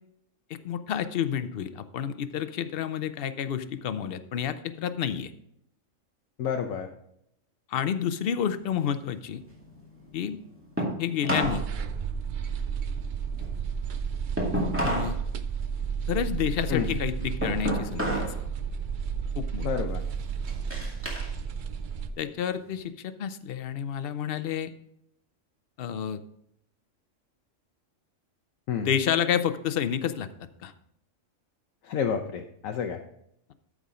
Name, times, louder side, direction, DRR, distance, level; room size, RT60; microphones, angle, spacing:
voice 1, 0.5-5.3 7.7-9.4 10.1-10.4 10.8-11.6 14.8-15.2 16.1-18.4 19.3-19.7 22.2-24.7 25.8-26.2 28.8-30.7, left 9 dB, 55° left, 11 dB, 0.7 m, -30 dB
voice 2, 6.4-6.9 16.7-17.0 19.6-20.0 28.7-28.9 31.8-33.0, left 7 dB, 85° left, 4 dB, 1.1 m, -29 dB
sound 1, 8.5-11.7 12.0-15.2 15.5-18.4 18.8-19.2 19.7-21.3 21.7-22.9, equal, 10° right, 2.2 m, -32 dB
sound 2, 11.4-22.1, right 6 dB, 60° right, 0.5 m, -32 dB
13.5 x 5.0 x 3.7 m, 0.75 s
omnidirectional pair, 1.4 m